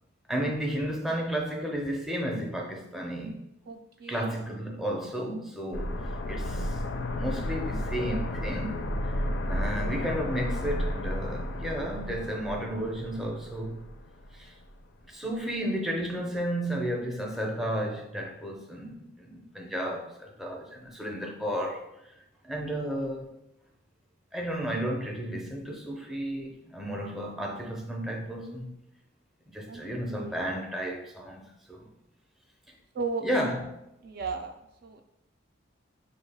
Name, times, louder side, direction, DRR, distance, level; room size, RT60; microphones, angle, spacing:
voice 1, 0.3-3.4 4.1-6.0 6.3-6.8 7.1-13.9 14.3-14.5 15.1-21.9 22.4-23.3 24.3-28.7 29.5-31.4 31.7-31.9 33.2-33.8, equal, ahead, 0.5 m, -33 dB
voice 2, 3.7-4.3 29.7-29.8 30.1-30.4 32.9-33.2 34.0-35.0, right 4 dB, 50° right, 0.3 m, -35 dB
sound 1, 5.7-14.4 14.7-14.8, left 1 dB, 60° left, 0.4 m, -32 dB
5.9 x 2.3 x 3.4 m
head